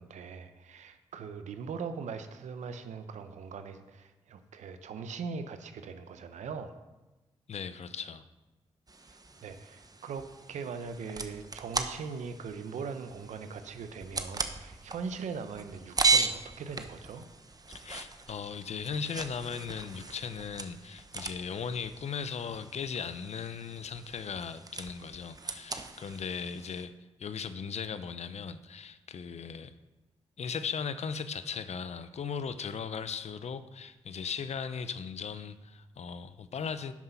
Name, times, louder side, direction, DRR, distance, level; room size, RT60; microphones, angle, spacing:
voice 1, 0.0-6.7 9.1-17.3, right 5 dB, 80° right, 9 dB, 0.7 m, -40 dB
voice 2, 7.5-8.2 17.7-26.9 27.2-29.7 30.4-36.9, left 6 dB, 65° left, 12 dB, 0.7 m, -37 dB
sound 1, 8.9-26.9, right 4 dB, 30° right, 1.0 m, -37 dB
10.5 x 5.8 x 5.7 m, 1.1 s
supercardioid pair, 45°, 12 cm